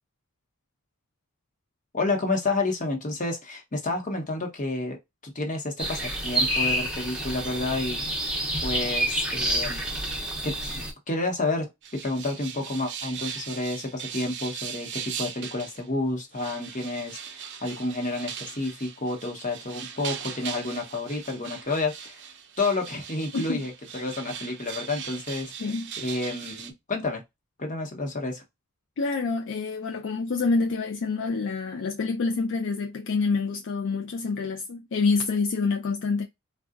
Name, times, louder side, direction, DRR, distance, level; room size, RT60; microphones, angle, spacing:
voice 1, 1.9-5.0 5.2-8.0 8.6-9.8 10.4-10.8 11.1-11.7 11.9-22.2 22.6-25.5 26.0-27.2 27.6-28.4, left 2 dB, 35° left, 1.0 m, -30 dB
sound 1, 5.8-10.9, right 1 dB, 5° right, 0.7 m, -28 dB
sound 2, 11.8-15.9 16.3-26.7, right 8 dB, 55° right, 0.5 m, -39 dB
voice 2, 25.6-25.9 29.0-36.2, left 4 dB, 60° left, 0.4 m, -27 dB
3.7 x 2.3 x 2.4 m
head